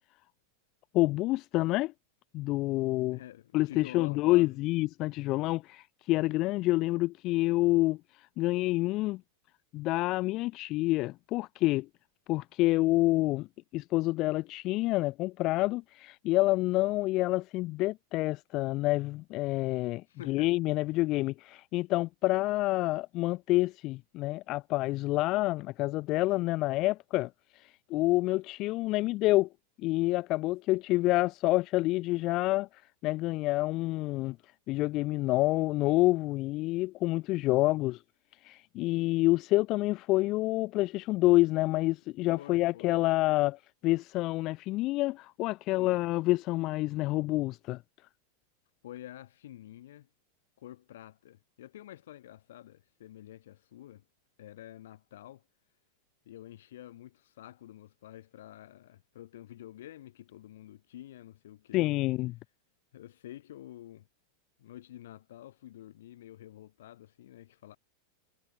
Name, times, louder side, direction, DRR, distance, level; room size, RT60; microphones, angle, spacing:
voice 1, 0.9-1.9 2.3-3.2 3.5-8.0 8.4-9.2 9.7-11.9 12.3-13.5 13.7-27.3 27.9-29.5 29.8-34.4 34.7-38.0 38.4-47.8 61.7-62.4, left 19 dB, 40° left, 0.6 m, -28 dB
voice 2, 3.1-4.6 20.1-20.5 42.3-43.0 45.8-46.0 48.8-50.1 50.6-54.0 54.4-55.4 56.3-61.9 62.9-64.1 64.6-67.8, left 13 dB, 60° left, 2.6 m, -48 dB
figure-of-eight pair, 90°, 0 cm